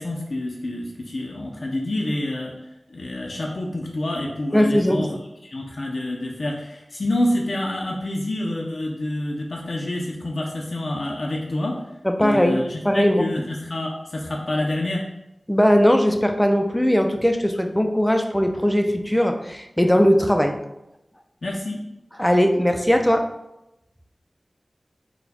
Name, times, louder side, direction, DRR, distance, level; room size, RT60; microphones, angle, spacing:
voice 1, 0.0-2.5 2.9-5.1 5.5-11.7 12.2-15.0 21.4-21.8, left 1 dB, 70° left, -1 dB, 0.5 m, -27 dB
voice 2, 4.5-5.1 12.0-13.2 15.5-20.6 22.2-23.3, equal, 10° left, 5 dB, 0.4 m, -19 dB
4.1 x 2.2 x 4.1 m, 0.90 s
wide cardioid pair, 50°, 0 cm